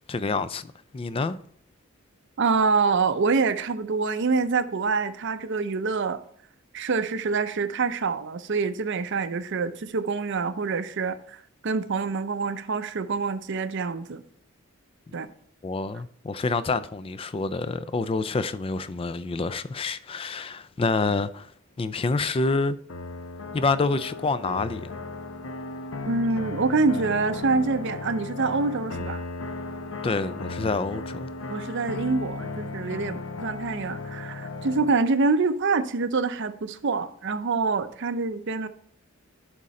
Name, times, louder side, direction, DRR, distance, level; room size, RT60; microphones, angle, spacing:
voice 1, 0.1-0.7 0.9-1.4 15.6-21.5 21.8-22.8 23.5-24.9 30.0-31.3, left 3 dB, 25° left, 0.4 m, -27 dB
voice 2, 2.4-6.2 6.7-11.4 11.6-14.2 15.1-15.3 26.0-29.2 30.6-30.7 31.5-38.7, right 4 dB, 55° right, 0.6 m, -26 dB
sound 1, 22.9-34.9, left 3 dB, 65° left, 0.8 m, -36 dB
11.0 x 3.7 x 4.2 m
head